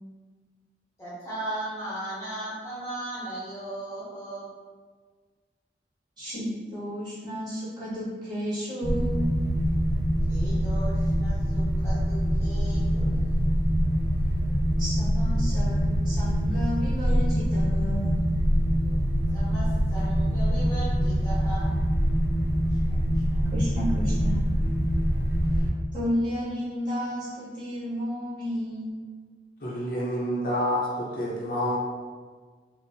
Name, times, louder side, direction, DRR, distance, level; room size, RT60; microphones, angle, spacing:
voice 1, 1.0-4.5 10.3-13.2 19.3-21.7 23.3-23.4, right 1 dB, 15° left, -10 dB, 0.7 m, -37 dB
voice 2, 6.2-9.2 14.8-18.2 23.5-24.4 25.9-29.0, equal, 25° right, -11 dB, 1.5 m, -32 dB
sound 1, 8.8-25.7, equal, 60° right, 1.0 m, -24 dB
voice 3, 29.6-31.8, equal, 50° left, -5 dB, 0.6 m, -28 dB
4.3 x 2.0 x 2.7 m, 1.5 s
head